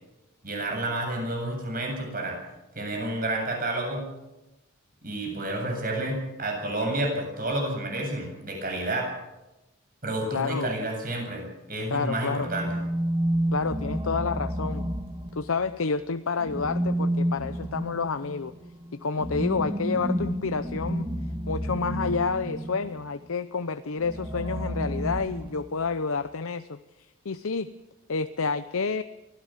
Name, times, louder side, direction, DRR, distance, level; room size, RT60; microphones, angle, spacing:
voice 1, 0.4-2.4 2.7-4.1 5.0-9.1 10.0-12.8, right 1 dB, 40° right, 2 dB, 7.8 m, -30 dB
voice 2, 10.3-10.7 11.9-12.5 13.5-14.9 15.4-18.5 18.9-21.1 21.5-27.7 28.1-29.0, left 4 dB, 75° left, 11 dB, 0.7 m, -29 dB
sound 1, 12.4-15.7 16.4-23.0 24.0-25.9, equal, 20° right, 2.2 m, -30 dB
24.0 x 17.0 x 7.4 m, 0.98 s
head